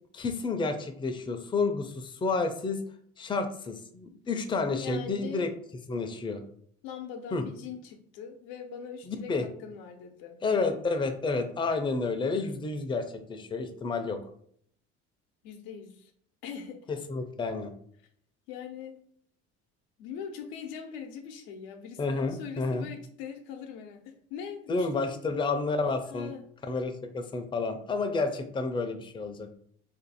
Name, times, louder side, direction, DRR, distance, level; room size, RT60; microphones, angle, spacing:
voice 1, 0.1-2.8 3.2-5.5 5.9-6.4 7.3-7.4 9.1-9.4 10.4-14.2 16.9-17.7 22.0-22.9 24.7-26.3 26.7-29.5, left 3 dB, 15° left, 6 dB, 0.4 m, -30 dB
voice 2, 4.8-5.5 6.8-10.4 12.3-12.5 15.4-16.1 16.4-16.8 18.5-18.9 20.0-25.2 26.1-26.4, left 7 dB, 90° left, 4 dB, 0.7 m, -41 dB
2.6 x 2.5 x 4.1 m, 0.65 s
supercardioid pair, 95°, 31 cm